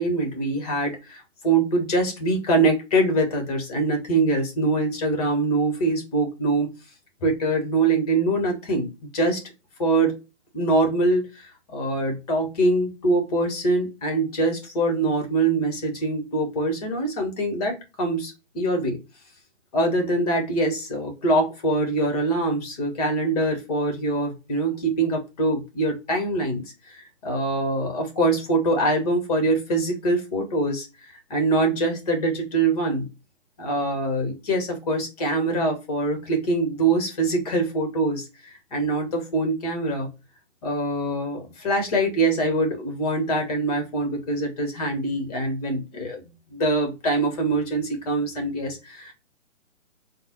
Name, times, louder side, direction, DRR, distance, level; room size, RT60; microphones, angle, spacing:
voice 1, 0.0-6.7 7.2-8.9 9.1-9.4 9.8-10.2 10.5-19.0 19.7-33.1 33.6-40.1 40.6-46.2 46.5-49.1, right 2 dB, 30° left, 3 dB, 1.3 m, -24 dB
3.7 x 2.2 x 3.0 m, 0.27 s
figure-of-eight pair, 135°, 38 cm